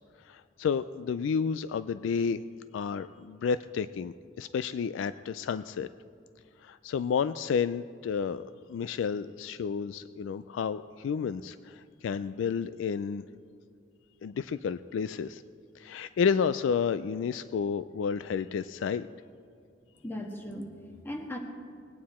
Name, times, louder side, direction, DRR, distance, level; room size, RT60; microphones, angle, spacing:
voice 1, 0.3-2.4 2.7-5.9 6.6-8.4 8.7-13.2 14.2-15.4 15.8-19.1, left 6 dB, 75° left, 14 dB, 0.3 m, -31 dB
voice 2, 20.0-21.4, left 1 dB, 10° left, 2 dB, 1.3 m, -38 dB
20.5 x 9.4 x 4.3 m, 2.3 s
head